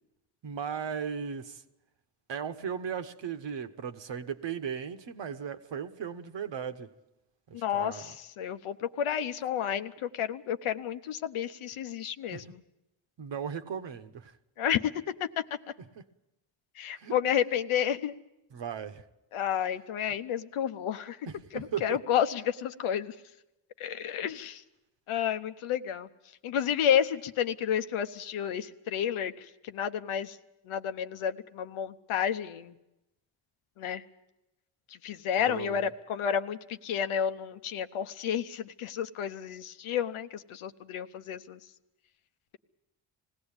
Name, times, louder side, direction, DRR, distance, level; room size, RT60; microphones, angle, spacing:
voice 1, 0.4-1.6 2.3-6.9 7.5-8.1 12.3-12.4 13.2-14.3 16.0-16.1 17.0-17.1 18.5-19.0 21.3-22.0 35.5-35.9, right 7 dB, 60° right, 9 dB, 1.3 m, -37 dB
voice 2, 7.5-12.6 14.6-14.9 15.2-15.3 16.8-18.1 19.3-21.2 21.5-23.1 23.8-24.6 25.1-26.1 26.4-30.4 30.7-32.7 33.8-34.0 34.9-41.6, left 9 dB, 75° left, 10 dB, 1.0 m, -31 dB
20.0 x 16.5 x 8.9 m, 0.92 s
supercardioid pair, 65°, 50 cm